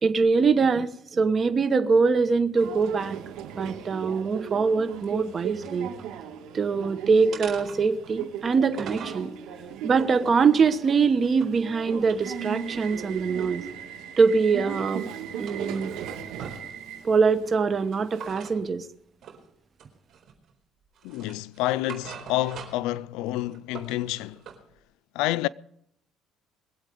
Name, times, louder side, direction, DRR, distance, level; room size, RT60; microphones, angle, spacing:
voice 1, 0.0-3.2 3.6-5.9 6.5-9.3 9.8-13.6 14.2-15.0 15.4-15.9 17.0-18.9, right 5 dB, 35° right, 1.1 m, -23 dB
Subway metro underground, 2.5-18.5, right 8 dB, 85° right, 2.0 m, -37 dB
sound 1, 4.9-6.1 6.5-6.9 7.3-9.3 9.8-11.6 12.0-13.8 14.2-15.0 15.3-16.7 18.1-18.6 19.2-19.5 19.8-20.5 20.9-22.9 23.3-24.6, right 7 dB, 55° right, 4.4 m, -45 dB
voice 2, 21.0-24.4 25.1-25.5, left 16 dB, 90° left, 0.4 m, -28 dB
22.5 x 8.3 x 5.1 m
cardioid pair, 120°, 0 cm